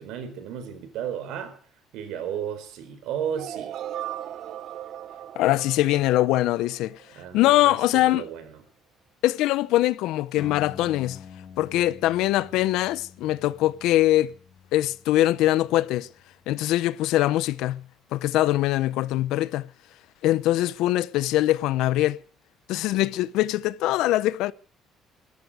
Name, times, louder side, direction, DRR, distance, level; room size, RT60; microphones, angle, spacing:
voice 1, 0.0-1.6 1.9-3.7 7.1-8.6, right 8 dB, 80° right, 4.2 m, -34 dB
sound 1, 3.3-7.3, right 11 dB, 50° right, 0.9 m, -37 dB
voice 2, 5.4-7.0 7.3-8.2 9.2-11.2 11.6-14.3 14.7-16.1 16.5-17.8 18.1-19.7 20.2-22.2 22.7-24.5, left 15 dB, 80° left, 0.8 m, -22 dB
sound 2, 10.4-17.3, left 6 dB, 35° left, 2.6 m, -48 dB
21.5 x 13.5 x 4.9 m
cardioid pair, 175°, 0 cm